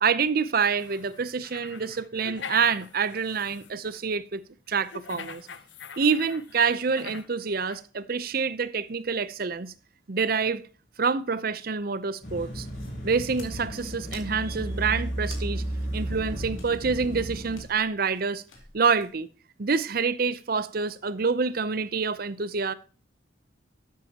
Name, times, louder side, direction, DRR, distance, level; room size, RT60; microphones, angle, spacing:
voice 1, 0.0-4.4 4.7-5.5 6.0-9.7 10.1-10.6 11.0-12.7 13.0-15.6 15.9-18.4 18.7-19.3 19.6-22.7, right 5 dB, 50° right, 0.6 m, -27 dB
sound 1, 0.8-4.0 4.8-7.3 7.7-7.8, left 5 dB, 65° left, 0.8 m, -43 dB
sound 2, 12.2-17.6, right 1 dB, 40° left, 6.0 m, -33 dB
sound 3, 12.7-19.1, left 4 dB, 85° left, 2.8 m, -51 dB
12.0 x 8.2 x 2.9 m
head